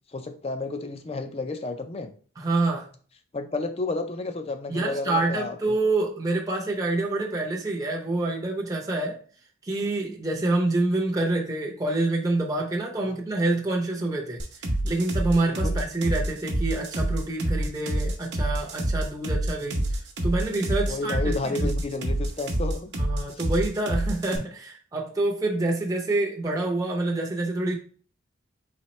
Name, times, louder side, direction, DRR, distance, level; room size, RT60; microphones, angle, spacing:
voice 1, 0.1-2.1 3.3-5.8 15.6-15.8 20.9-22.9 23.3-23.4, left 3 dB, 30° left, 8 dB, 0.4 m, -31 dB
voice 2, 2.4-2.9 4.7-9.2 9.6-14.4 14.8-21.8 23.0-27.8, right 2 dB, 15° right, -2 dB, 0.6 m, -27 dB
sound 1, 14.4-24.4, right 1 dB, 60° right, 0.8 m, -27 dB
4.2 x 3.3 x 3.1 m, 0.43 s
head